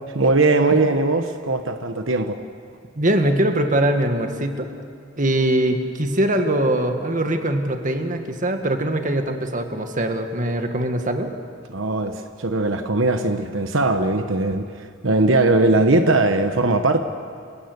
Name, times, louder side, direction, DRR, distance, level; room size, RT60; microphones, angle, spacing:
voice 1, 0.1-2.4 11.7-17.0, right 2 dB, 80° right, 7 dB, 1.2 m, -20 dB
voice 2, 3.0-4.7 5.2-11.3, right 1 dB, 40° right, 5 dB, 1.9 m, -22 dB
28.0 x 17.5 x 8.2 m, 2.4 s
head